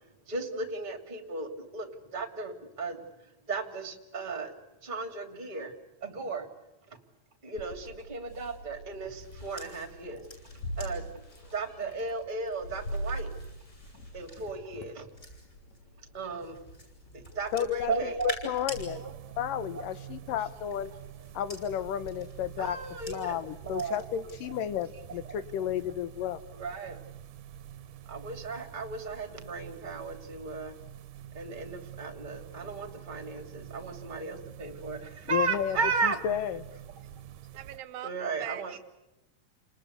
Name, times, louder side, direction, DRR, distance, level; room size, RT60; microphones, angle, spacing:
voice 1, 0.3-1.9 2.1-3.0 3.5-4.5 4.8-5.7 6.0-6.5 7.4-10.2 10.8-11.0 11.5-13.3 14.1-15.1 16.1-16.6 17.3-18.4 18.9-19.1 22.6-23.9 26.5-27.0 28.1-30.7 31.3-36.2 38.0-38.8, right 4 dB, 15° right, 7 dB, 2.5 m, -35 dB
Meow, 7.6-18.9, equal, 55° left, 3.3 m, -43 dB
sound 1, 8.2-15.8 16.4-18.8 20.1-24.3 24.7-25.1, equal, 25° left, 8.0 m, -48 dB
voice 2, 17.5-19.0 19.4-20.9 21.3-22.8 23.1-26.4 35.3-35.8 36.0-36.6, left 10 dB, 75° left, 13 dB, 2.6 m, -32 dB
sound 2, 18.7-37.8, right 10 dB, 75° right, 2.5 m, -47 dB
voice 3, 37.5-38.1 38.4-38.8, right 13 dB, 90° right, 14 dB, 2.9 m, -40 dB
30.0 x 20.0 x 8.3 m, 0.99 s
omnidirectional pair, 4.0 m